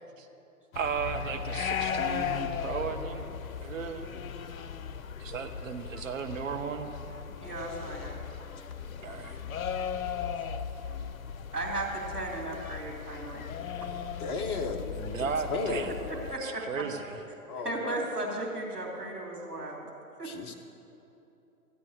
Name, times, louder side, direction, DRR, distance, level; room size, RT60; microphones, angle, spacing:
sound 1, 0.7-16.3, left 7 dB, 65° left, 0.7 m, -37 dB
voice 1, 0.7-3.2 3.6-4.1 5.2-6.9 9.0-9.4 14.9-16.0 16.4-17.1, right 6 dB, 60° right, 5 dB, 1.2 m, -35 dB
voice 2, 7.4-8.2 11.5-13.4 16.1-16.9 17.6-19.9 20.2-20.3, right 2 dB, 85° right, -3 dB, 3.1 m, -35 dB
voice 3, 14.2-15.9 17.5-18.1 20.2-20.5, left 4 dB, 20° left, 3 dB, 0.7 m, -34 dB
13.5 x 8.8 x 6.6 m, 2.8 s
figure-of-eight pair, 120°, 45 cm